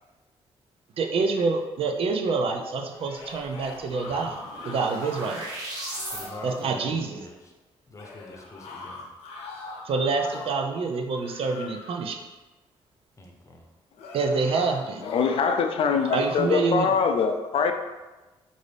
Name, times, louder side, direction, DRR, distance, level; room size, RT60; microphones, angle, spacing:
voice 1, 1.0-4.4 4.7-5.5 6.4-7.2 9.9-12.2 14.1-15.0 16.1-16.9, right 4 dB, 60° right, 3 dB, 0.5 m, -27 dB
sound 1, 2.9-5.3 5.7-6.6 8.0-10.7 11.1-12.1 14.0-15.5 15.9-16.6, left 3 dB, 85° left, 0.8 m, -41 dB
sound 2, 3.8-6.3, right 1 dB, 35° right, 1.4 m, -37 dB
voice 2, 6.1-7.5 7.9-9.1 13.2-13.7, left 1 dB, 30° left, 1 dB, 0.8 m, -45 dB
voice 3, 15.0-17.7, left 5 dB, 60° left, 6 dB, 0.4 m, -23 dB
5.1 x 2.6 x 3.3 m, 1.2 s
cardioid pair, 75°, 11 cm